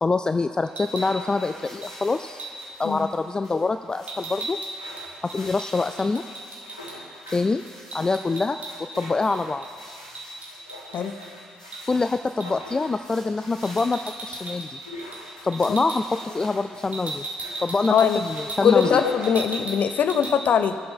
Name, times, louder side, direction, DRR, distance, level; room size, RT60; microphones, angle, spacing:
voice 1, 0.0-2.5 2.8-4.6 5.3-6.2 7.3-7.6 7.9-9.6 11.9-14.8 15.4-17.2 17.6-19.0, left 3 dB, 20° left, 9 dB, 0.4 m, -25 dB
sound 1, 0.6-20.2, left 1 dB, 85° left, 1.2 m, -42 dB
sound 2, 0.6-1.1 1.8-2.0 2.4-2.7 4.1-7.0 7.3-7.4 7.7-9.0 9.3-11.3 11.7-11.9 12.4-12.6 13.6-14.7 15.0-15.2 15.5-16.0 16.9-19.0 19.2-19.8 20.1-20.3, right 2 dB, 40° right, 1.9 m, -36 dB
voice 2, 17.9-18.2 18.6-20.8, left 7 dB, 50° left, 9 dB, 0.7 m, -21 dB
20.5 x 7.7 x 4.2 m, 2.2 s
figure-of-eight pair, 40°, 4 cm